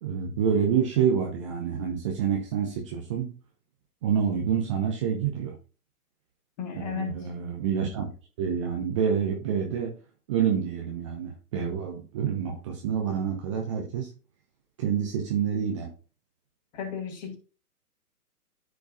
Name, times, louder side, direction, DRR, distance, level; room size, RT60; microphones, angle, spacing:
voice 1, 0.0-3.3 4.0-5.5 6.7-8.1 8.4-9.9 10.3-14.1 14.8-15.9, right 7 dB, 20° right, 0.7 m, -27 dB
voice 2, 6.6-7.2 16.7-17.4, left 7 dB, 30° left, 1.5 m, -34 dB
13.5 x 4.7 x 2.4 m
figure-of-eight pair, 125°, 46 cm